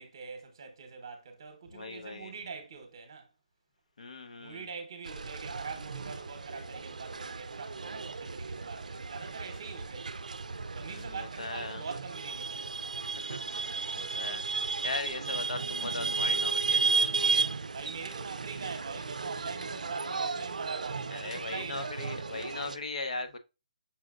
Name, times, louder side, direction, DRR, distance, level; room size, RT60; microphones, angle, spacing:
voice 1, 0.0-3.3 4.4-10.1 10.7-12.7 17.7-22.0, right 5 dB, 35° right, 1.0 m, -43 dB
voice 2, 1.7-2.3 4.0-4.7 10.9-11.8 13.0-17.5 21.1-23.4, left 3 dB, 65° left, 0.9 m, -39 dB
sound 1, 5.0-22.8, right 4 dB, 80° right, 0.4 m, -34 dB
5.8 x 3.7 x 2.4 m
hypercardioid pair, 170°, 4 cm